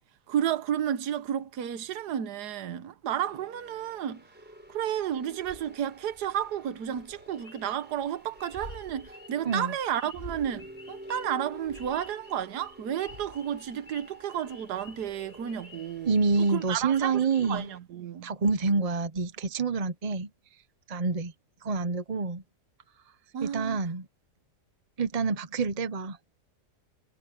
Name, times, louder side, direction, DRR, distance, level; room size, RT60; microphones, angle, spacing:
voice 1, 0.3-4.2 4.7-18.3 23.3-23.8, right 10 dB, 75° right, 1.6 m, -32 dB
sound 1, 3.2-17.8, equal, 5° right, 5.6 m, -50 dB
sound 2, 4.5-17.6, left 1 dB, 30° left, 5.5 m, -52 dB
sound 3, 7.3-17.6, left 4 dB, 55° left, 3.0 m, -54 dB
voice 2, 16.1-17.7 18.2-20.3 20.9-21.3 21.6-22.4 23.4-24.1 25.0-26.2, right 4 dB, 35° right, 0.6 m, -27 dB
omnidirectional pair, 1.8 m